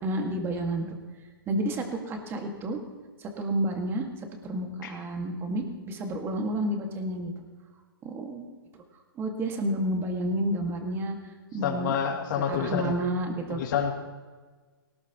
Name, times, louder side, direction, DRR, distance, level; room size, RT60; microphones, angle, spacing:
voice 1, 0.0-1.0 1.5-2.8 3.2-4.1 4.4-7.3 8.0-8.5 9.2-11.2 11.5-11.9 12.5-13.6, right 1 dB, 20° right, 3 dB, 2.0 m, -30 dB
voice 2, 11.6-13.0 13.5-13.9, left 7 dB, 50° left, 1 dB, 2.8 m, -28 dB
18.5 x 18.0 x 3.1 m, 1.4 s
hypercardioid pair, 145°, 13 cm